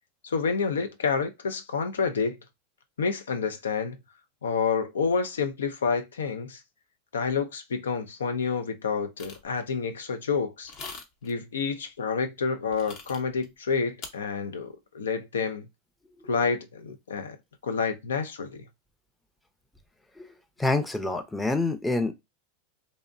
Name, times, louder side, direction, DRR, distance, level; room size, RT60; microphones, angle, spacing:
voice 1, 0.2-2.4 3.0-4.0 4.4-6.6 7.1-10.7 11.2-15.7 16.3-17.4 17.6-18.6, left 5 dB, 90° left, 0.4 m, -29 dB
sound 1, 9.2-9.5 10.6-11.3 12.7-13.5 14.0-14.1, left 4 dB, 50° left, 0.8 m, -42 dB
voice 2, 20.6-22.1, left 2 dB, 10° left, 0.5 m, -26 dB
2.6 x 2.0 x 2.5 m
hypercardioid pair, 105°, 0 cm